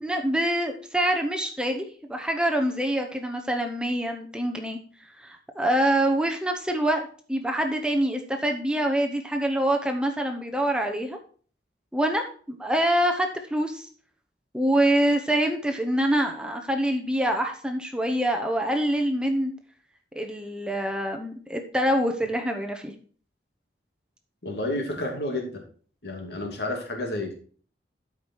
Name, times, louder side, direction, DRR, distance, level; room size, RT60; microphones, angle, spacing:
voice 1, 0.0-4.8 5.2-11.2 11.9-13.8 14.5-19.5 20.1-22.9, right 1 dB, 5° right, 3 dB, 0.8 m, -25 dB
voice 2, 24.4-25.6 26.0-27.3, left 1 dB, 70° left, 1 dB, 2.6 m, -30 dB
12.5 x 5.1 x 4.6 m, 0.43 s
head